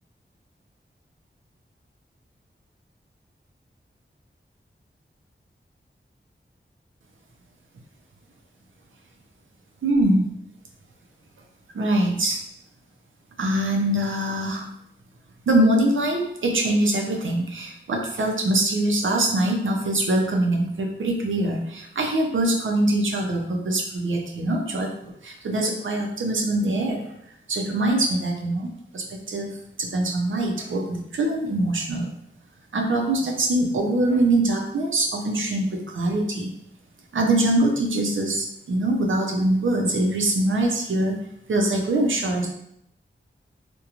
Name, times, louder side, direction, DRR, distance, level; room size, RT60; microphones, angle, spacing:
voice 1, 9.8-10.3 11.7-12.4 13.4-14.7 15.5-27.1 27.5-28.7 28.9-29.5 29.8-32.1 32.7-36.5 37.1-41.2 41.5-42.5, right 1 dB, 85° right, 0 dB, 0.5 m, -23 dB
2.4 x 2.2 x 2.9 m, 0.75 s
wide cardioid pair, 65°, 20 cm